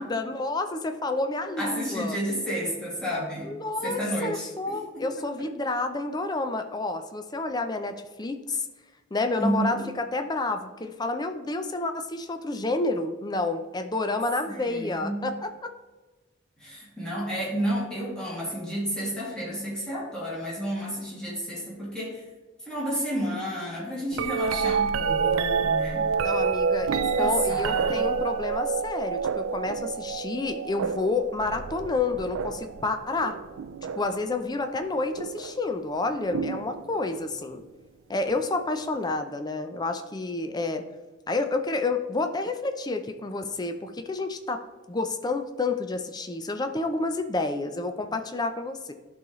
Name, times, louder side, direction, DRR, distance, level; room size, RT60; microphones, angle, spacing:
voice 1, 0.0-2.2 3.4-8.7 9.1-15.7 26.2-33.3 33.8-37.6 38.1-40.8 41.3-44.6 44.9-48.9, left 3 dB, 20° left, 7 dB, 0.5 m, -29 dB
voice 2, 1.6-3.5 3.8-5.2 9.4-9.9 14.5-15.3 16.6-22.2 22.7-26.1 27.2-28.0, equal, 5° left, -7 dB, 2.3 m, -31 dB
sound 1, 24.1-34.2 35.2-35.6 36.3-37.3 39.1-39.2, right 6 dB, 85° right, 0.4 m, -28 dB
11.0 x 4.0 x 3.1 m, 1.2 s
head